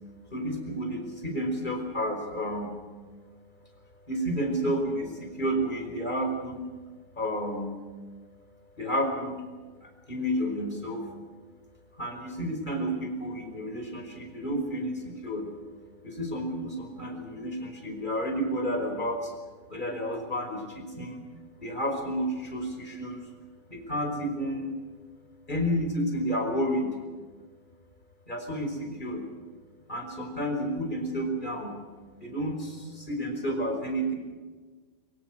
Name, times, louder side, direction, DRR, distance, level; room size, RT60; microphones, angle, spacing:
voice 1, 0.3-2.7 4.1-6.6 7.2-7.8 8.8-9.4 9.8-11.0 12.0-15.5 16.0-19.3 19.7-21.2 21.6-23.3 23.7-24.7 25.5-27.0 28.3-29.2 29.9-31.7 32.2-34.1, equal, 25° left, 3 dB, 5.5 m, -31 dB
24.5 x 24.5 x 6.4 m, 1.4 s
omnidirectional pair, 1.8 m